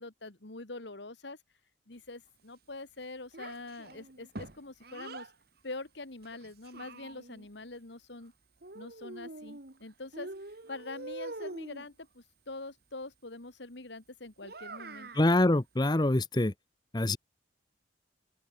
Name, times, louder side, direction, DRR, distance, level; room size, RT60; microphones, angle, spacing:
voice 1, 0.0-1.4 1.9-5.3 5.6-8.3 8.7-10.3 10.7-15.1, left 2 dB, 65° left, 1.9 m, -44 dB
Child speech kid speaking, 3.3-5.3 6.2-7.5 8.6-9.8 10.1-11.9 14.4-15.3, right 2 dB, 55° right, 1.8 m, -44 dB
voice 2, 15.1-16.5 16.9-17.2, left 1 dB, 20° left, 0.8 m, -25 dB
open air
head